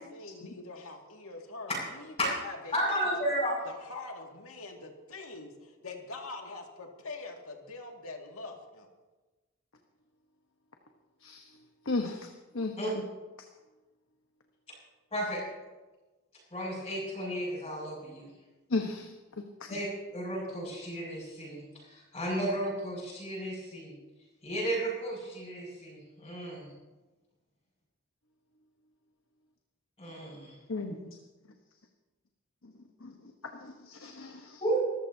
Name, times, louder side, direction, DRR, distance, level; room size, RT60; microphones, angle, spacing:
voice 1, 0.0-3.3 3.6-8.9, left 3 dB, 85° left, 2 dB, 2.2 m, -44 dB
voice 2, 2.7-3.5 12.8-12.9 15.1-15.4 16.5-18.3 19.7-24.0 24.4-26.7 30.0-30.6 34.6-34.8, right 1 dB, 25° left, -8 dB, 6.5 m, -33 dB
voice 3, 11.9-12.3 12.5-13.0 18.7-19.1 30.7-31.0 32.6-32.7 33.0-33.1 33.6-34.6, left 3 dB, 65° left, 3 dB, 1.2 m, -34 dB
24.5 x 14.5 x 2.8 m, 1.2 s
head